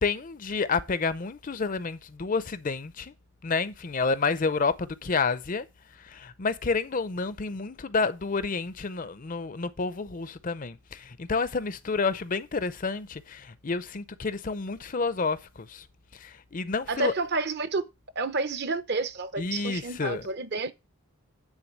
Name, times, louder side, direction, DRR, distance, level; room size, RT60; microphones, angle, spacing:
voice 1, 0.0-3.1 3.4-5.7 6.1-10.8 11.2-15.4 15.7-15.8 16.2-17.1 19.4-20.2, left 4 dB, 35° left, 0.5 m, -29 dB
voice 2, 16.9-17.8 18.2-20.7, right 3 dB, 50° right, 0.8 m, -30 dB
9.9 x 3.9 x 7.4 m
head